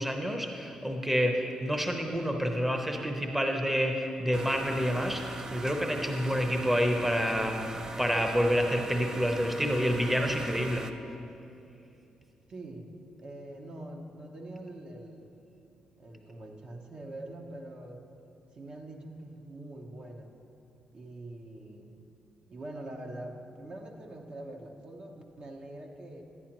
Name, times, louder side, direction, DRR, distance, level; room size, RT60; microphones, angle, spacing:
voice 1, 0.0-10.9, equal, 5° right, 4 dB, 0.8 m, -28 dB
sound 1, 4.3-10.9, right 2 dB, 30° right, 0.4 m, -40 dB
voice 2, 12.5-12.9 13.2-15.3 16.0-18.1 18.5-20.3 20.9-21.9 22.5-26.2, right 1 dB, 50° right, 1 dB, 0.9 m, -44 dB
10.5 x 9.8 x 3.0 m, 2.8 s
supercardioid pair, 60°, 2 cm